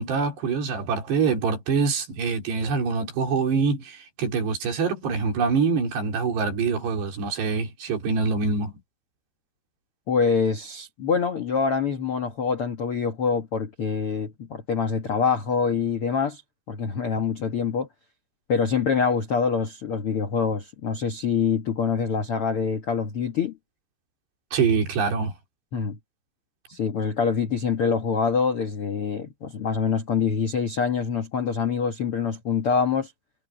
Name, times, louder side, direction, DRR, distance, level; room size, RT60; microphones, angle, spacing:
voice 1, 0.0-8.7 24.5-25.3, right 5 dB, 70° right, 6.0 m, -25 dB
voice 2, 10.1-16.4 16.7-17.9 18.5-23.6 25.7-26.0 26.7-33.1, left 6 dB, 70° left, 1.3 m, -25 dB
omnidirectional pair, 5.0 m